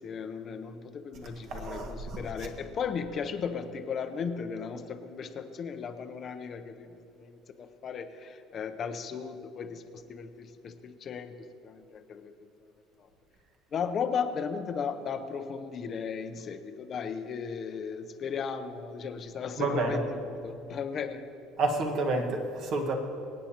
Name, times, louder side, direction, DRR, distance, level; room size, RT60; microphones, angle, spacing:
voice 1, 0.0-6.9 7.1-12.3 12.6-12.7 13.0-13.1 13.7-21.2, left 6 dB, 40° left, 8 dB, 0.7 m, -36 dB
voice 2, 1.5-2.2 19.6-20.0 21.6-22.9, right 3 dB, 55° right, 3 dB, 1.5 m, -29 dB
25.5 x 8.7 x 2.9 m, 2.8 s
cardioid pair, 135°, 0 cm